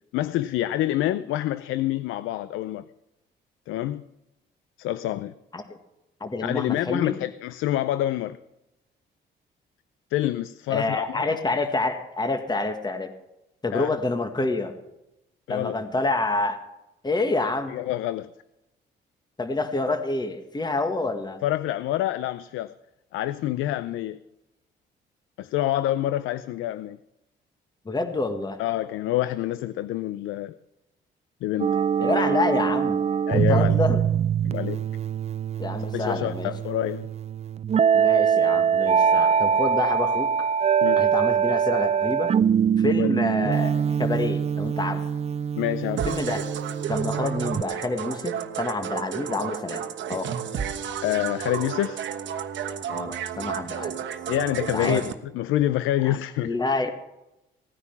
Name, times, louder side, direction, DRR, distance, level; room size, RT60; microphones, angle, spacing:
voice 1, 0.1-2.8 3.7-4.0 4.8-5.3 6.4-8.4 10.1-11.2 13.7-13.9 15.5-15.8 17.7-18.3 21.4-22.7 23.1-24.2 25.4-27.0 28.6-30.5 31.4-31.8 33.3-33.8 34.4-34.8 35.9-37.1 40.8-41.0 43.0-43.1 45.6-46.1 51.0-52.1 54.3-56.5, left 13 dB, 90° left, 14 dB, 0.5 m, -27 dB
voice 2, 6.2-7.2 10.7-13.1 13.6-14.7 15.5-16.6 17.0-17.7 19.4-21.4 27.8-28.6 32.0-33.0 33.3-34.0 35.6-36.5 37.9-40.5 41.0-42.3 42.8-45.0 46.0-46.4 46.9-50.3 52.9-54.0 54.7-55.0 56.0-56.2 56.4-56.9, left 2 dB, 20° left, 6 dB, 1.6 m, -27 dB
sound 1, 31.6-47.6, right 7 dB, 35° right, 0.4 m, -23 dB
sound 2, 46.0-55.1, right 8 dB, 70° right, 1.2 m, -32 dB
17.5 x 9.7 x 5.9 m, 0.92 s
cardioid pair, 90°, 20 cm